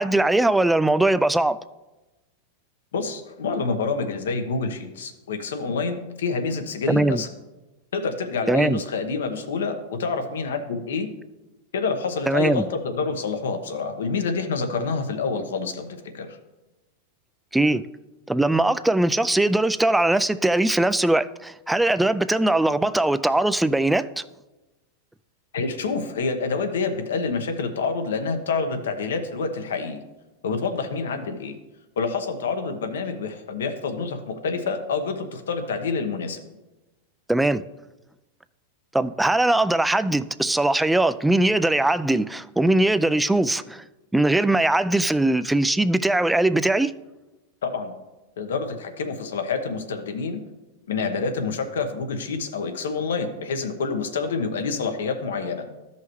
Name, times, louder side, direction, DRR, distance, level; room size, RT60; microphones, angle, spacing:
voice 1, 0.0-1.6 6.9-7.2 8.5-8.8 12.3-12.6 17.5-17.8 18.3-24.2 37.3-37.6 38.9-43.8 44.1-46.9, right 2 dB, 5° right, 0.3 m, -21 dB
voice 2, 2.9-7.3 7.9-11.1 11.7-15.9 16.1-16.4 25.5-30.0 30.4-31.5 32.0-36.4 47.6-47.9 48.4-50.4 50.9-55.7, left 4 dB, 85° left, 1.0 m, -27 dB
13.0 x 5.6 x 3.1 m
hypercardioid pair, 120°, 0 cm